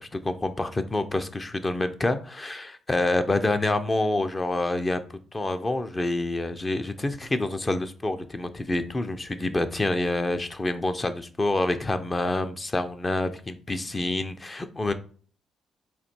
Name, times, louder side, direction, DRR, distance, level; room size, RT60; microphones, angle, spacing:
voice 1, 0.0-14.9, left 2 dB, 25° left, 10 dB, 0.5 m, -27 dB
4.3 x 2.6 x 4.3 m, 0.42 s
cardioid pair, 90°, 0 cm